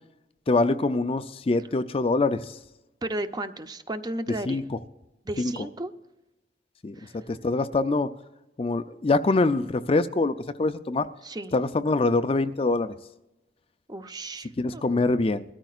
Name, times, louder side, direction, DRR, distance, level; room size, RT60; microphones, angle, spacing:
voice 1, 0.5-2.6 4.5-4.6 5.4-5.5 6.8-7.0 7.3-8.1 8.6-11.1 11.5-12.9 14.6-15.4, left 3 dB, 30° left, 10 dB, 0.4 m, -24 dB
voice 2, 3.0-4.6 5.2-5.9 6.9-7.3 11.2-11.6 13.9-14.8, right 1 dB, 20° right, 9 dB, 0.7 m, -34 dB
21.5 x 13.5 x 2.4 m, 0.95 s
head